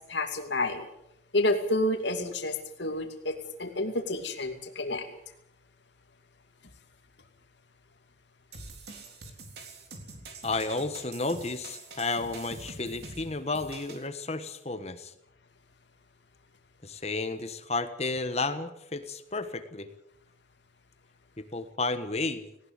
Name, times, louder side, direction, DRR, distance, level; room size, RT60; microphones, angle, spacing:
voice 1, 0.1-0.9 1.3-5.1, left 1 dB, 70° left, 5 dB, 2.6 m, -29 dB
sound 1, 8.5-14.1, right 3 dB, 55° right, 3.7 m, -45 dB
voice 2, 10.4-15.1 16.8-19.9 21.5-22.5, left 3 dB, 35° left, 10 dB, 1.3 m, -32 dB
19.0 x 18.5 x 8.2 m, 0.78 s
head